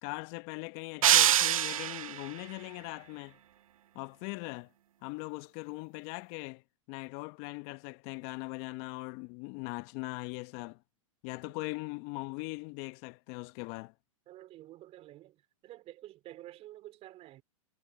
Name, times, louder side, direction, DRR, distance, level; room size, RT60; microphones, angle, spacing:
voice 1, 0.0-3.4 3.9-4.7 5.0-6.6 6.9-10.8 11.2-13.9, left 28 dB, 45° left, 0.9 m, -40 dB
sound 1, 1.0-2.3, right 11 dB, 75° right, 0.5 m, -24 dB
voice 2, 14.3-17.4, right 15 dB, 35° right, 4.1 m, -50 dB
hypercardioid pair, 110°, 18 cm